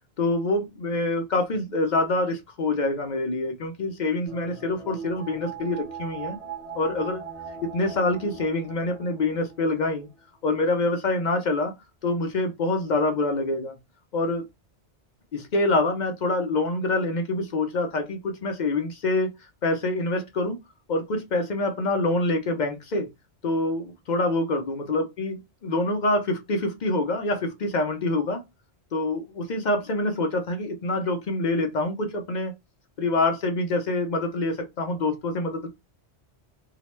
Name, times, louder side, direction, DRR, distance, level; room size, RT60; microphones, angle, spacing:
voice 1, 0.2-6.4 6.7-7.2 7.6-10.1 10.4-11.7 12.0-13.8 14.1-14.4 15.3-19.3 19.6-20.6 20.9-23.1 23.4-28.4 28.9-32.5 33.0-35.7, left 2 dB, 55° left, 0.5 m, -26 dB
sound 1, 4.3-10.2 10.5-10.6, right 6 dB, 65° right, 1.1 m, -40 dB
2.8 x 2.0 x 3.0 m
omnidirectional pair, 1.2 m